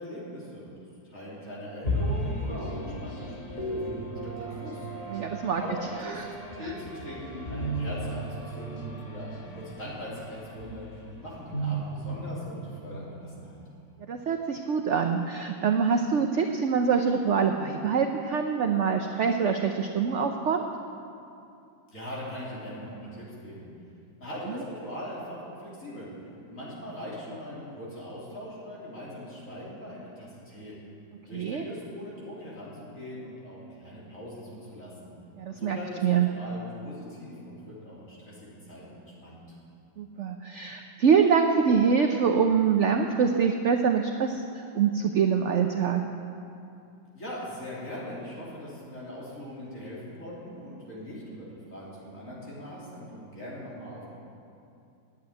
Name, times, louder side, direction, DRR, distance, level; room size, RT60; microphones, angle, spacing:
voice 1, 0.0-4.9 5.6-6.2 6.5-13.6 21.9-23.7 24.2-26.1 26.5-30.7 31.2-35.1 35.5-36.0 36.3-39.6 47.1-54.1, equal, 45° left, -7 dB, 3.6 m, -40 dB
sound 1, 1.8-13.5, right 1 dB, 25° left, 1.2 m, -35 dB
voice 2, 5.1-5.6 6.0-6.1 6.6-6.7 14.0-20.6 24.5-24.6 31.3-31.7 35.4-36.3 40.0-46.0, right 6 dB, 70° right, 4 dB, 0.7 m, -25 dB
10.5 x 8.7 x 9.3 m, 2.6 s
omnidirectional pair, 2.0 m